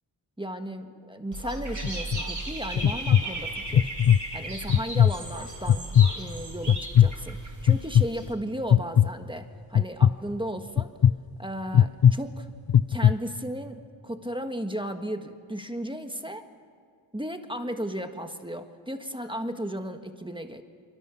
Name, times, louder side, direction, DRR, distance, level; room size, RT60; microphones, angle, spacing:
voice 1, 0.4-3.9 4.3-7.4 7.6-10.9 11.4-12.5 12.9-16.4 17.1-20.6, equal, 10° right, 6 dB, 1.5 m, -35 dB
Dog / Bird, 1.3-8.3, right 2 dB, 35° right, 5.0 m, -36 dB
sound 1, 1.8-2.2 2.8-3.2 3.7-4.2 4.7-5.1 5.7-6.1 6.7-7.1 7.7-8.0 8.7-9.1 9.8-10.1 10.8-11.1 11.7-12.1 12.7-13.1, left 9 dB, 50° left, 0.6 m, -17 dB
26.5 x 24.5 x 7.1 m, 2.1 s
wide cardioid pair, 80°, 47 cm